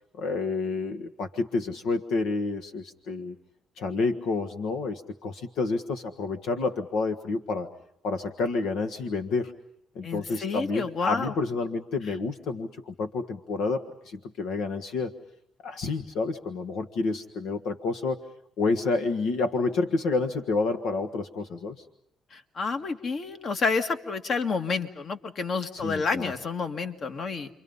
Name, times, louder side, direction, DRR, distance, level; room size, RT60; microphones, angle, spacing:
voice 1, 0.2-3.4 3.8-7.7 8.0-9.5 9.9-15.1 15.6-18.2 18.6-21.8 25.7-26.3, left 3 dB, 85° left, 7 dB, 1.4 m, -29 dB
voice 2, 10.0-11.3 22.3-27.5, left 4 dB, 55° left, 7 dB, 2.1 m, -29 dB
30.0 x 24.5 x 5.4 m, 0.75 s
cardioid pair, 90°, 0 cm